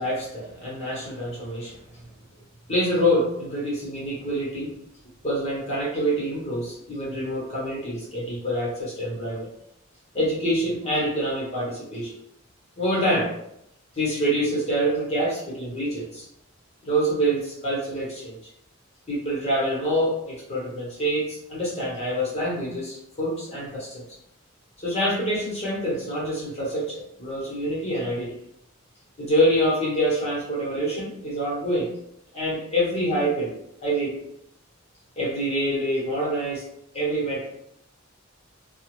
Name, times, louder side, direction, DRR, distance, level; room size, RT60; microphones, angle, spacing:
voice 1, 0.0-1.8 2.7-4.7 5.2-9.5 10.1-12.2 12.8-13.3 13.9-16.2 16.8-18.4 19.1-24.0 24.8-28.3 29.2-31.9 32.3-33.5 33.8-34.2 35.2-36.6 36.9-37.5, equal, 30° left, -5 dB, 0.9 m, -26 dB
2.2 x 2.1 x 3.0 m, 0.77 s
head